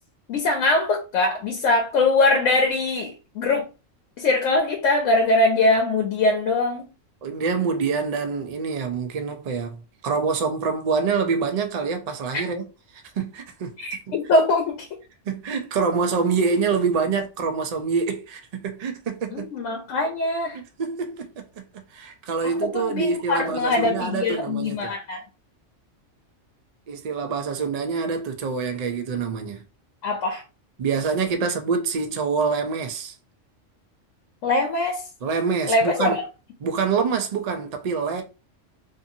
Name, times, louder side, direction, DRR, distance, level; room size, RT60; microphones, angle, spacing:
voice 1, 0.3-3.6 4.2-6.8 13.8-15.0 19.3-20.6 22.4-25.2 30.0-30.4 34.4-35.0 35.7-36.2, left 2 dB, 85° left, 1.0 m, -22 dB
voice 2, 7.2-12.7 13.2-13.7 14.1-14.2 15.3-19.5 20.8-21.6 21.9-24.9 26.9-29.6 30.8-33.1 35.2-36.2 36.6-38.2, right 5 dB, 80° right, 0.3 m, -26 dB
2.6 x 2.6 x 2.6 m
omnidirectional pair, 1.3 m